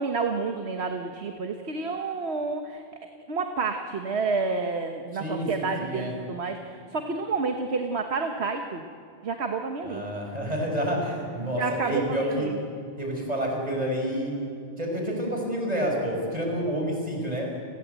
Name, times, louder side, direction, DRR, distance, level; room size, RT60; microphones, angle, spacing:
voice 1, 0.0-2.8 3.3-8.8 9.2-10.0 11.4-12.6, right 4 dB, 85° right, 5 dB, 1.5 m, -29 dB
voice 2, 5.2-6.1 9.9-12.5 13.0-14.3 14.8-17.7, equal, 40° right, 0 dB, 6.1 m, -29 dB
29.5 x 23.0 x 8.2 m, 2.5 s
omnidirectional pair, 1.1 m